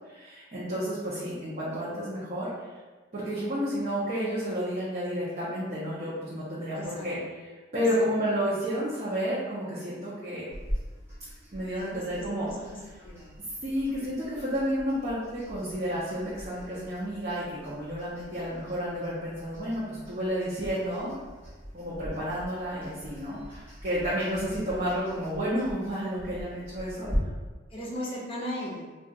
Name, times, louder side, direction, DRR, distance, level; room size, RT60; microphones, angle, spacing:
voice 1, 0.1-2.5 3.1-7.2 7.7-10.4 11.5-12.5 13.6-21.2 21.7-27.1, equal, 35° right, -9 dB, 0.7 m, -31 dB
voice 2, 6.8-7.1 8.0-8.1 11.8-13.3 18.3-18.5 21.8-22.3 27.0-27.3 27.7-28.9, left 1 dB, 30° left, -5 dB, 0.8 m, -38 dB
sound 1, 10.5-27.2, equal, 10° right, 1.0 m, -43 dB
2.4 x 2.4 x 3.9 m, 1.3 s
head